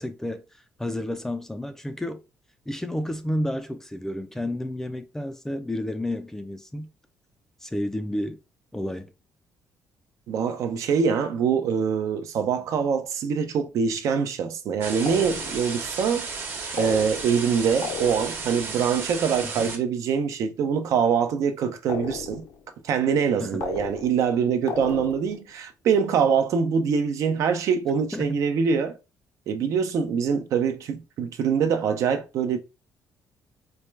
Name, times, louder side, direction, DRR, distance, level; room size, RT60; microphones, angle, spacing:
voice 1, 0.0-2.2 2.7-6.9 7.6-8.4 8.7-9.1 19.4-19.7 23.4-23.6 28.1-28.4, left 1 dB, 10° left, 0.4 m, -31 dB
voice 2, 10.3-16.3 16.7-22.4 22.8-29.0 29.5-32.6, right 6 dB, 65° right, 0.6 m, -24 dB
sound 1, 14.8-19.8, right 4 dB, 40° right, 1.0 m, -34 dB
sound 2, 15.1-15.8 16.8-17.5 17.8-18.6 21.9-22.6 23.6-24.3 24.7-25.4, left 7 dB, 70° left, 0.6 m, -35 dB
4.3 x 2.2 x 3.2 m
cardioid pair, 135°, 6 cm